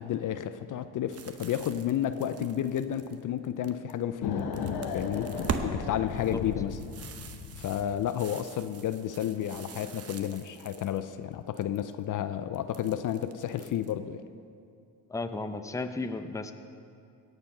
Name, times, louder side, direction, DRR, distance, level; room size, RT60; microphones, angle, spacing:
voice 1, 0.0-4.5 4.9-5.3 5.6-6.8 7.6-14.2, left 10 dB, 55° left, 11 dB, 0.6 m, -31 dB
sound 1, 1.1-3.9 4.3-5.7 6.1-11.0 11.3-11.9 12.5-13.9, right 6 dB, 40° right, 0.9 m, -42 dB
sound 2, 4.2-7.9, left 6 dB, 75° left, 1.1 m, -35 dB
voice 2, 15.1-16.5, left 3 dB, 10° left, 8 dB, 0.6 m, -34 dB
17.5 x 6.9 x 5.5 m, 2.4 s
cardioid pair, 90°, 38 cm